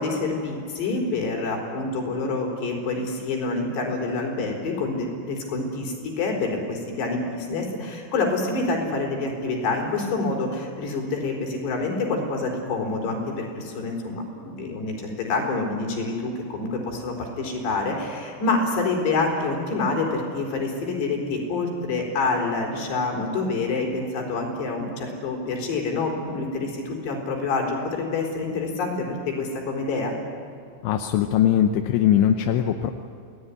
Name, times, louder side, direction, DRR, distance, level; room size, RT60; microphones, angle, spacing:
voice 1, 0.0-30.2, left 3 dB, 65° left, 1 dB, 6.3 m, -27 dB
voice 2, 30.8-32.9, left 10 dB, 80° left, 5 dB, 3.2 m, -20 dB
28.0 x 19.0 x 10.0 m, 2.5 s
omnidirectional pair, 5.4 m